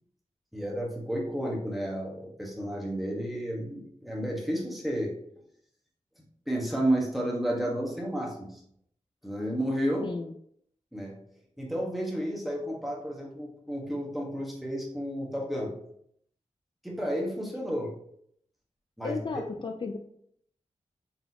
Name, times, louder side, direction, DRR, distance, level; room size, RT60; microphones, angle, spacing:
voice 1, 0.5-5.2 6.2-8.6 9.2-10.1 10.9-11.2 11.6-15.7 16.8-17.9 19.0-19.4, equal, ahead, -3 dB, 1.3 m, -32 dB
voice 2, 10.0-10.3 19.0-20.0, left 4 dB, 40° left, 4 dB, 0.4 m, -34 dB
4.1 x 3.5 x 2.9 m, 0.69 s
wide cardioid pair, 60°, 13 cm